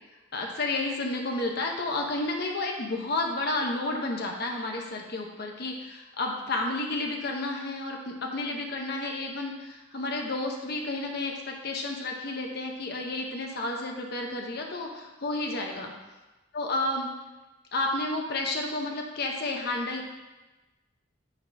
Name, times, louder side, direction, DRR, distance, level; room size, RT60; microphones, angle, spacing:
voice 1, 0.3-15.9 16.5-17.1 17.7-20.1, left 2 dB, 50° left, 1 dB, 0.7 m, -31 dB
8.4 x 3.8 x 3.3 m, 1.1 s
head